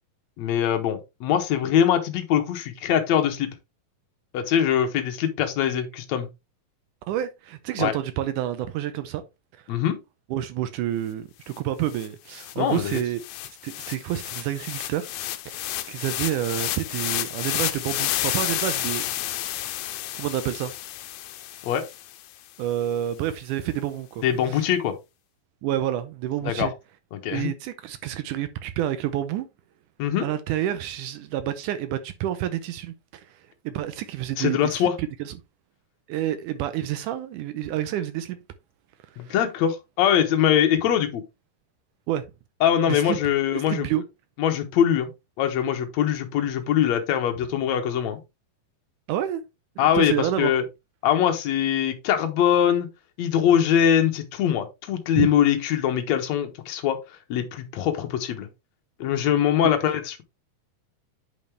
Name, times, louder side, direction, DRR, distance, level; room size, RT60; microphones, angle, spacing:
voice 1, 0.4-3.5 4.3-6.3 7.8-7.9 9.7-10.0 12.6-13.0 21.6-21.8 24.2-24.9 26.4-26.7 27.1-27.5 30.0-30.3 34.4-34.9 39.2-41.2 42.6-43.9 44.4-45.1 45.4-48.2 49.8-50.6 51.0-52.9 53.2-57.0 57.3-58.5 59.0-60.2, left 9 dB, 60° left, 2.0 m, -22 dB
voice 2, 7.1-9.2 9.5-9.8 10.3-15.1 15.5-19.1 20.1-20.7 22.6-24.7 25.6-26.7 27.3-29.5 30.2-35.3 36.1-38.4 39.2-39.4 42.1-42.3 42.9-43.2 43.5-44.0 49.1-49.4 49.9-50.5 55.2-55.3, right 12 dB, 85° right, 1.8 m, -29 dB
sound 1, 11.6-11.7 11.9-22.3, left 14 dB, 75° left, 2.3 m, -31 dB
8.9 x 5.3 x 3.2 m
omnidirectional pair, 4.3 m